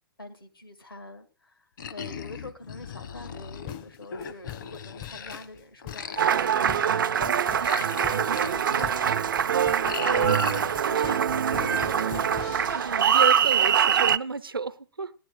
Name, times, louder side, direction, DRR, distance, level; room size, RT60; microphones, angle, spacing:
voice 1, 0.2-12.7, left 1 dB, 90° left, 7 dB, 2.0 m, -45 dB
sound 1, 1.8-5.5 5.8-11.0 11.5-13.2, left 6 dB, 65° left, 1.1 m, -39 dB
sound 2, 3.7-13.2, left 16 dB, 35° left, 0.5 m, -44 dB
Applause, 6.2-14.2, right 8 dB, 65° right, 0.5 m, -23 dB
voice 2, 10.1-10.6 12.4-12.5 12.7-15.1, right 4 dB, 85° right, 13 dB, 0.9 m, -32 dB
15.0 x 10.0 x 4.9 m, 0.37 s
figure-of-eight pair, 110°, 12 cm